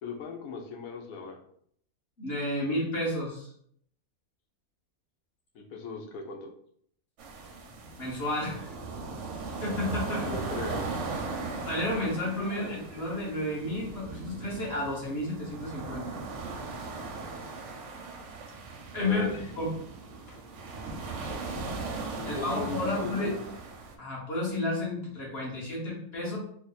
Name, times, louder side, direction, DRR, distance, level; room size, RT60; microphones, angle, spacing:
voice 1, 0.0-1.4 5.5-6.5 10.0-11.1 12.4-12.8 19.0-19.3 22.2-23.4, left 3 dB, 70° left, 2 dB, 1.1 m, -38 dB
voice 2, 2.2-3.5 8.0-8.8 9.6-10.3 11.6-16.2 18.9-19.3 19.5-19.7 20.3-20.4 22.3-23.4 24.0-26.4, left 1 dB, 45° left, -4 dB, 1.4 m, -31 dB
sound 1, 7.2-23.9, right 3 dB, 65° right, 0.8 m, -38 dB
3.4 x 2.1 x 3.9 m, 0.65 s
omnidirectional pair, 1.6 m